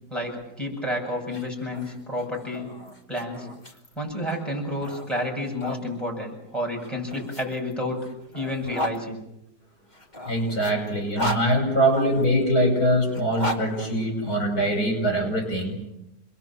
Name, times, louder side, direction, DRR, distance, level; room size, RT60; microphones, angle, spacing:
voice 1, 0.1-2.7 3.1-3.5 3.9-8.0 8.3-9.2, left 1 dB, ahead, 1 dB, 7.8 m, -30 dB
sound 1, 1.2-5.8 6.8-9.0 9.9-12.3 13.1-14.7, equal, 30° left, 2.5 m, -35 dB
voice 2, 10.3-15.7, right 1 dB, 70° left, 3 dB, 6.0 m, -23 dB
28.0 x 21.5 x 7.6 m, 0.87 s
omnidirectional pair, 1.7 m